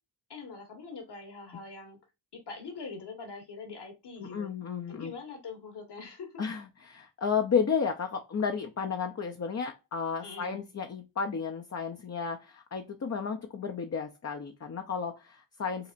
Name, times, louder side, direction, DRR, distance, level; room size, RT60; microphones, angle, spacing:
voice 1, 0.3-2.0 2.3-4.5 4.9-6.4 10.2-10.6, left 4 dB, 55° left, 1.5 m, -43 dB
voice 2, 4.2-5.1 6.4-15.9, left 6 dB, 35° left, 0.6 m, -32 dB
5.7 x 2.1 x 2.5 m
cardioid pair, 60°, 47 cm